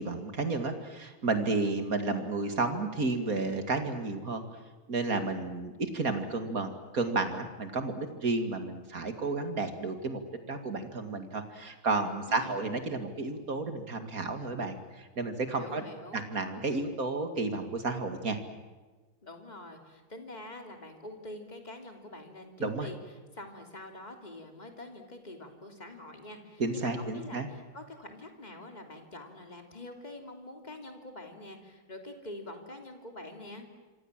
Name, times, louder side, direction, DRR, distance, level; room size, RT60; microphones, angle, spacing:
voice 1, 0.0-4.4 4.9-10.2 10.5-15.8 16.1-18.4 22.6-22.9 26.6-27.5, right 3 dB, 40° right, 7 dB, 2.7 m, -32 dB
voice 2, 15.5-16.2 19.2-23.0 23.3-33.7, left 1 dB, 20° left, 4 dB, 3.2 m, -45 dB
26.5 x 26.0 x 7.6 m, 1.3 s
omnidirectional pair, 2.3 m